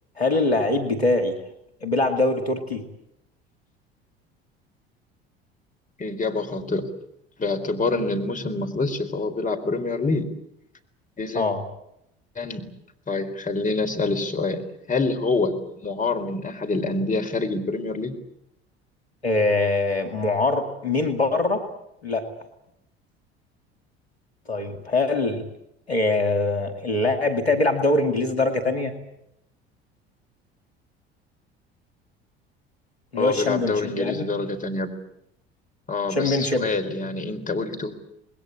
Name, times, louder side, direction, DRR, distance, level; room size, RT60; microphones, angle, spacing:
voice 1, 0.2-1.4 1.8-2.8 11.3-11.6 19.2-21.6 22.0-22.3 24.5-25.4 25.9-28.9 33.1-34.3 36.1-36.7, left 2 dB, 90° left, 5 dB, 2.3 m, -23 dB
voice 2, 6.0-6.9 7.4-10.2 11.2-11.5 12.4-12.7 13.1-14.6 14.9-18.2 33.2-34.9 35.9-37.9, left 3 dB, 25° left, 5 dB, 4.1 m, -26 dB
27.0 x 20.5 x 8.6 m, 0.79 s
figure-of-eight pair, 60°, 31 cm